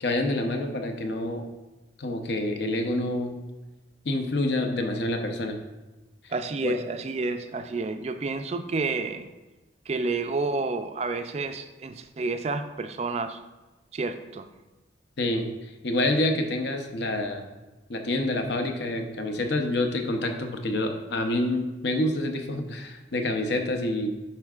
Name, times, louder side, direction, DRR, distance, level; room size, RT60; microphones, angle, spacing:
voice 1, 0.0-1.5 2.0-3.4 4.0-5.6 6.2-6.3 6.6-6.7 15.2-15.5 15.8-17.4 17.9-24.1, left 1 dB, 65° left, 4 dB, 0.7 m, -27 dB
voice 2, 6.3-9.3 9.9-13.4 13.9-14.5, right 3 dB, 35° right, 9 dB, 0.3 m, -30 dB
10.5 x 4.5 x 2.4 m, 1.1 s
head